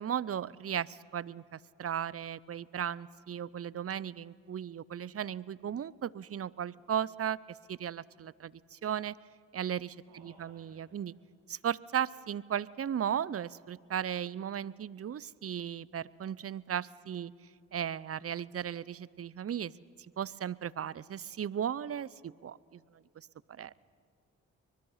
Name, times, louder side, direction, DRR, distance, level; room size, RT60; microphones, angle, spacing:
voice 1, 0.0-9.2 9.5-11.1 11.5-17.3 17.7-19.7 20.2-22.8 23.2-23.7, right 9 dB, 40° right, 22 dB, 0.7 m, -36 dB
voice 2, 10.1-11.0 23.7-23.8, right 2 dB, 90° right, -3 dB, 4.3 m, -60 dB
24.5 x 21.0 x 5.7 m, 2.3 s
supercardioid pair, 45°, 35 cm